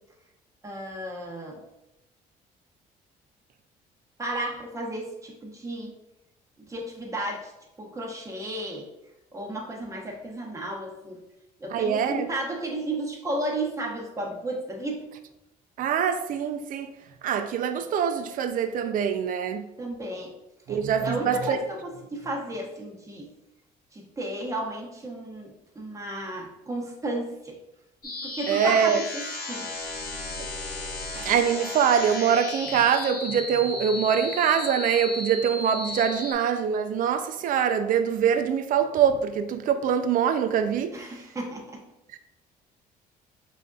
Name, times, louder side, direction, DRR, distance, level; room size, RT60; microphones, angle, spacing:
voice 1, 0.6-1.6 4.2-5.9 6.7-7.5 7.8-8.9 9.3-11.2 11.6-15.1 19.8-20.3 20.7-23.3 23.9-27.6 28.0-29.8 40.9-41.8, right 1 dB, 20° right, 0.9 m, -33 dB
voice 2, 11.7-12.3 15.8-16.9 17.2-19.7 20.7-21.6 28.5-29.0 30.4-30.5 31.1-40.9 42.1-42.2, right 8 dB, 55° right, 0.4 m, -24 dB
sound 1, 28.0-36.3, left 2 dB, 60° left, 1.1 m, -35 dB
5.0 x 2.5 x 2.3 m
cardioid pair, 110°, 17 cm